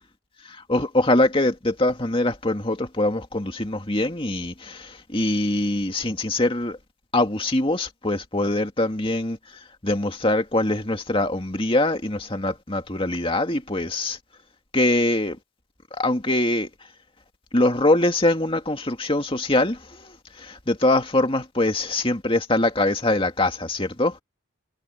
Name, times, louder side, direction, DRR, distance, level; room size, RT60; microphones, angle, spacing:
voice 1, 0.5-6.8 7.1-9.4 9.8-14.2 14.7-15.4 15.9-16.7 17.5-24.1, left 2 dB, 25° left, 2.3 m, -23 dB
head